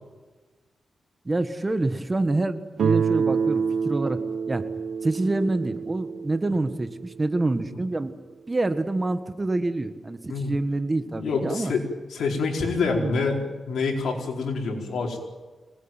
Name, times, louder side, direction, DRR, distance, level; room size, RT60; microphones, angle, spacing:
voice 1, 1.3-4.2 4.5-4.6 5.0-8.1 8.5-11.7 13.0-13.2, right 2 dB, 25° right, 9 dB, 1.7 m, -27 dB
Guitar, 2.8-7.6, right 6 dB, 85° right, 1.0 m, -27 dB
voice 2, 11.1-11.8 12.1-15.2, left 4 dB, 90° left, 1 dB, 4.7 m, -26 dB
25.5 x 19.5 x 9.2 m, 1.3 s
wide cardioid pair, 105°, 0 cm